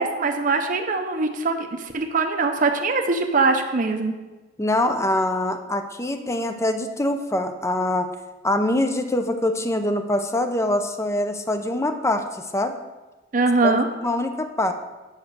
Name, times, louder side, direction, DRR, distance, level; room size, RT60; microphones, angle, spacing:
voice 1, 0.0-4.1 13.3-13.9, right 3 dB, 45° right, 4 dB, 0.8 m, -22 dB
voice 2, 4.6-8.1 8.4-12.7 13.6-13.7 14.0-14.7, left 1 dB, 15° left, 7 dB, 0.6 m, -24 dB
7.3 x 5.8 x 6.6 m, 1.2 s
head